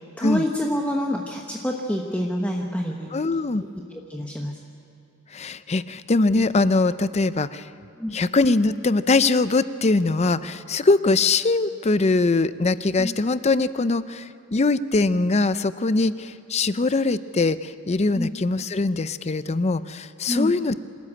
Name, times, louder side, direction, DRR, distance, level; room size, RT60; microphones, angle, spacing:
voice 1, 0.2-3.2 4.1-4.6 8.0-8.2 13.0-13.1 18.1-18.3 20.3-20.5, equal, 5° left, 0 dB, 1.1 m, -27 dB
voice 2, 3.1-3.6 5.3-7.7 8.1-20.8, left 3 dB, 30° left, 14 dB, 0.5 m, -22 dB
26.5 x 13.5 x 8.8 m, 2.7 s
head